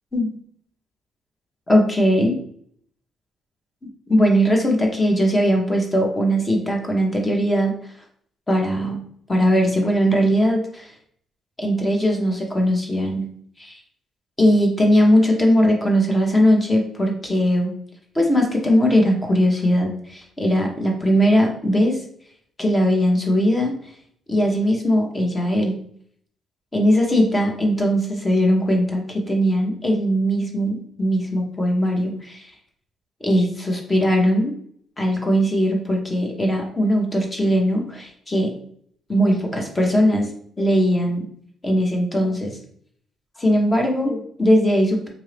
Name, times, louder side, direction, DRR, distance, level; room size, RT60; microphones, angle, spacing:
voice 1, 1.7-2.3 4.1-7.8 8.5-9.0 9.3-10.9 11.6-13.3 13.6-13.8 14.4-17.7 18.1-22.0 22.6-23.7 24.3-25.8 26.7-32.5 33.2-34.5 35.0-38.6 39.1-40.3 40.6-41.2 41.6-42.6 43.4-45.1, equal, 20° left, 1 dB, 1.0 m, -19 dB
3.8 x 2.7 x 3.3 m, 0.62 s
cardioid pair, 90°, 0 cm